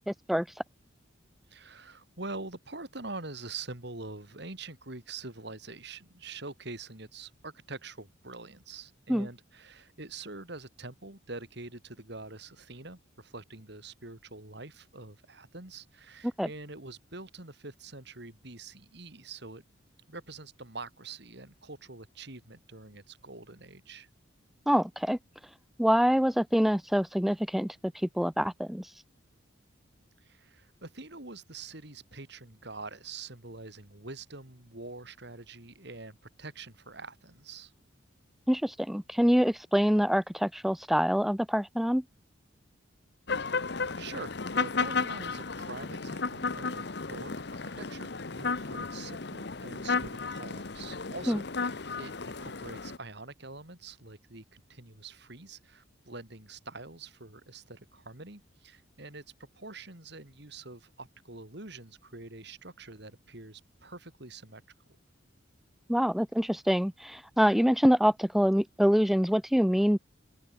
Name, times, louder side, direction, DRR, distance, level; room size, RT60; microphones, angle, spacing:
voice 1, 0.1-0.6 9.1-9.3 16.2-16.5 24.7-25.2 25.8-28.9 38.5-42.0 51.3-51.4 65.9-70.0, equal, ahead, 0.4 m, -25 dB
voice 2, 1.5-19.6 20.1-24.1 30.2-37.7 43.4-47.3 47.8-59.2 59.5-64.6 64.9-65.0, right 3 dB, 55° right, 3.1 m, -45 dB
sound 1, 43.3-53.0, left 4 dB, 55° left, 1.1 m, -34 dB
open air
head